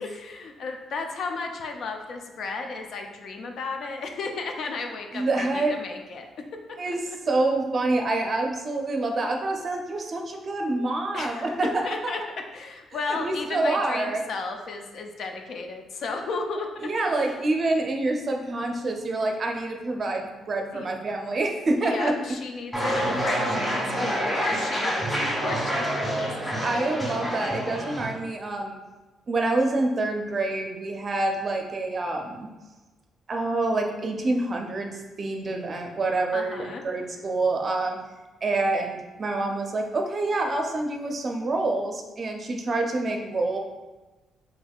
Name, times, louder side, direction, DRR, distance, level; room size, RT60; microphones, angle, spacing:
voice 1, 0.0-6.3 6.9-7.0 11.1-16.9 17.2-17.4 20.7-20.9 21.8-25.9 26.3-26.4 26.8-26.9 36.3-36.8, left 3 dB, 65° left, 4 dB, 0.4 m, -34 dB
voice 2, 5.1-5.8 6.8-7.0 7.3-11.8 13.2-14.2 16.8-22.1 26.4-28.8 29.3-32.5 33.3-38.0 38.4-43.6, right 2 dB, 40° right, 2 dB, 0.5 m, -27 dB
sound 1, 22.7-28.1, equal, 10° left, 1.4 m, -27 dB
3.4 x 3.4 x 2.3 m, 1.2 s
cardioid pair, 90°, 0 cm